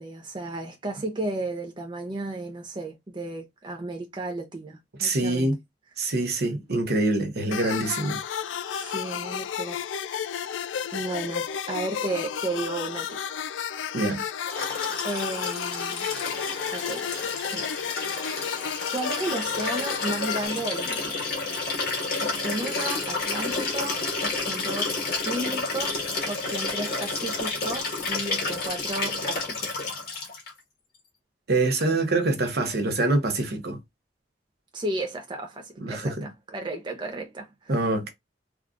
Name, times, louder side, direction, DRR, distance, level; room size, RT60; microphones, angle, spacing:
voice 1, 0.0-5.5 8.0-8.2 8.7-9.8 10.9-13.2 15.0-16.1 16.7-18.3 18.9-21.2 22.2-26.0 26.3-29.7 34.7-37.8, right 2 dB, 25° right, 0.5 m, -34 dB
voice 2, 5.0-5.6 6.0-8.2 8.8-9.0 13.9-14.2 31.5-33.8 35.8-36.3 37.7-38.1, right 2 dB, 60° right, 0.8 m, -25 dB
sound 1, 7.5-20.5, left 8 dB, 90° left, 0.3 m, -32 dB
Liquid, 14.5-30.5 31.8-31.9, left 3 dB, 55° left, 1.3 m, -30 dB
3.6 x 2.3 x 2.4 m
head